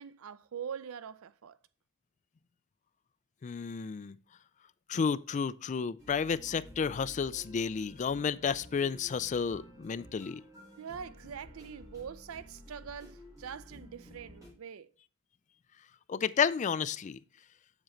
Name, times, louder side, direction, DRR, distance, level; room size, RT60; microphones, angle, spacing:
voice 1, 0.0-1.6 10.8-14.9, right 7 dB, 90° right, 0.5 m, -43 dB
voice 2, 3.4-4.2 4.9-10.4 16.1-17.2, left 6 dB, 35° left, 0.3 m, -31 dB
sound 1, 6.0-14.5, left 1 dB, 15° right, 4.2 m, -52 dB
7.5 x 7.3 x 3.1 m
head